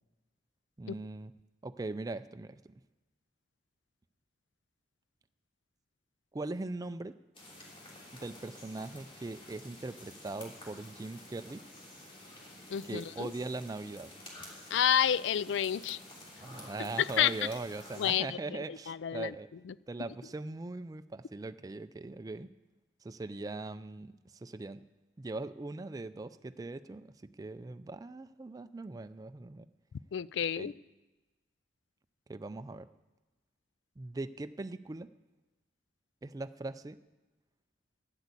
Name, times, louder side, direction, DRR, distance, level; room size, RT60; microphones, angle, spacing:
voice 1, 0.8-1.3 1.6-2.5 6.3-7.1 8.2-11.6 12.8-14.1 16.4-19.5 19.9-22.5 23.0-24.8 25.2-29.7 30.6-30.7 32.3-32.9 34.0-35.1 36.2-37.0, right 2 dB, 20° right, 11 dB, 0.3 m, -40 dB
sound 1, 7.3-18.1, left 1 dB, 30° left, 3.0 m, -51 dB
voice 2, 12.7-13.3 14.7-16.0 17.0-17.3 18.0-19.3 19.7-19.8 30.1-30.7, left 9 dB, 75° left, 20 dB, 0.3 m, -30 dB
11.0 x 8.1 x 8.2 m, 1.1 s
head